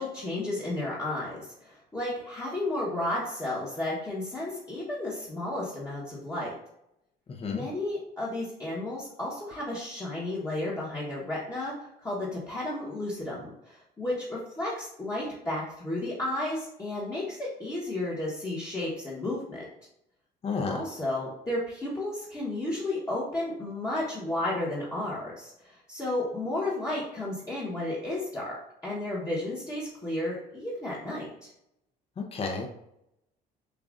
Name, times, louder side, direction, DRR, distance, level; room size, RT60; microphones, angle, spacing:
voice 1, 0.0-6.5 7.5-19.7 20.7-31.5, left 1 dB, 20° left, -8 dB, 1.3 m, -33 dB
voice 2, 20.4-20.8 32.2-32.7, left 4 dB, 35° left, 1 dB, 0.8 m, -31 dB
6.7 x 2.5 x 2.5 m, 0.81 s
cardioid pair, 110°, 17 cm